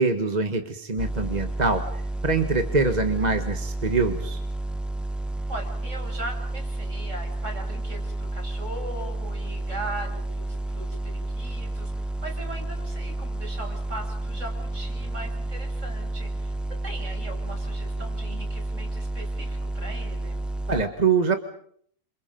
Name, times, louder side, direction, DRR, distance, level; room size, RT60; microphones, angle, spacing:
voice 1, 0.0-1.9 2.2-4.4 20.7-21.4, right 4 dB, 30° right, 6 dB, 1.5 m, -24 dB
sound 1, 1.0-20.8, right 2 dB, ahead, 0.9 m, -31 dB
voice 2, 5.5-16.5 16.8-20.4, right 2 dB, 55° right, 2 dB, 7.2 m, -39 dB
28.5 x 27.5 x 5.3 m, 0.64 s
omnidirectional pair, 1.5 m